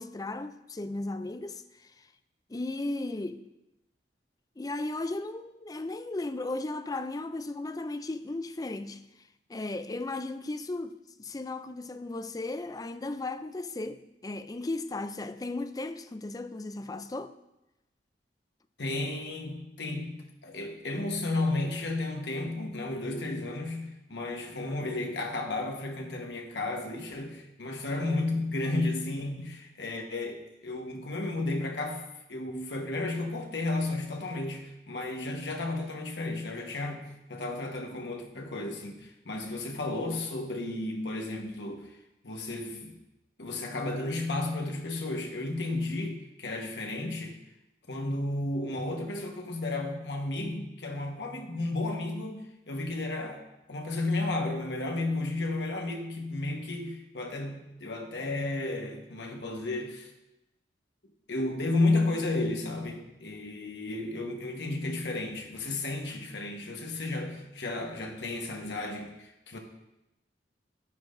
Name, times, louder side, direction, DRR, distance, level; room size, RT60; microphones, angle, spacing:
voice 1, 0.0-2.1 2.5-3.4 4.6-9.0 9.5-17.3, left 2 dB, 20° left, 0.4 m, -36 dB
voice 2, 18.8-41.9 42.2-43.0 43.4-47.3 47.9-53.4 53.7-60.1 61.3-69.6, left 2 dB, 70° left, 1.3 m, -33 dB
11.0 x 9.2 x 2.6 m
head